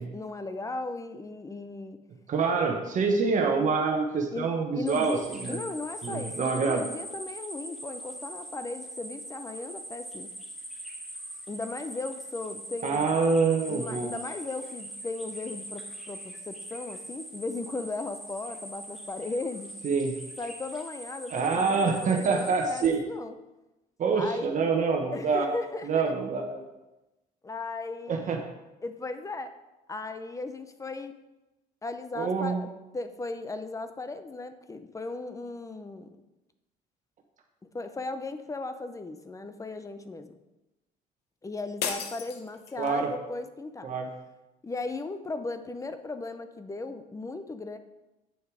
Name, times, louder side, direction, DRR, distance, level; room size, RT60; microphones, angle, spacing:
voice 1, 0.0-2.0 4.3-4.5 4.7-5.2 5.5-10.3 11.5-13.1 13.7-19.7 20.4-23.3 24.2-24.6 25.1-26.1 27.4-28.4 28.8-29.5 29.9-31.1 31.8-36.2 37.7-40.4 41.4-43.9 44.6-47.8, left 3 dB, 20° left, 9 dB, 0.7 m, -37 dB
voice 2, 2.3-5.6 6.0-6.8 12.8-14.1 19.8-20.2 21.3-23.0 24.0-25.5 25.8-26.6 28.1-28.4 32.2-32.6 42.8-43.1 43.8-44.1, right 4 dB, 50° right, 3 dB, 1.2 m, -26 dB
sound 1, 4.9-22.9, right 1 dB, ahead, 1.9 m, -42 dB
sound 2, 41.8-43.1, left 7 dB, 85° left, 1.0 m, -35 dB
8.8 x 6.5 x 4.8 m, 1.0 s
cardioid pair, 110°, 17 cm